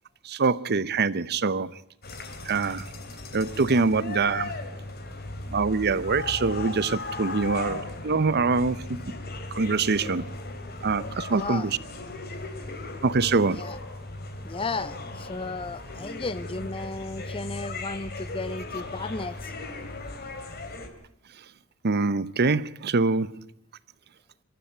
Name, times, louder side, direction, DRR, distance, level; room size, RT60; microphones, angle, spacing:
voice 1, 0.2-1.7 2.5-2.8 3.3-4.5 5.5-9.1 9.5-10.2 10.8-11.8 13.0-13.6 21.8-23.5, right 4 dB, 50° right, 0.7 m, -24 dB
sound 1, 2.0-20.9, left 2 dB, 50° left, 3.0 m, -37 dB
voice 2, 11.3-11.7 13.5-13.8 14.4-19.5, left 3 dB, 25° left, 0.7 m, -34 dB
23.5 x 13.0 x 8.9 m
head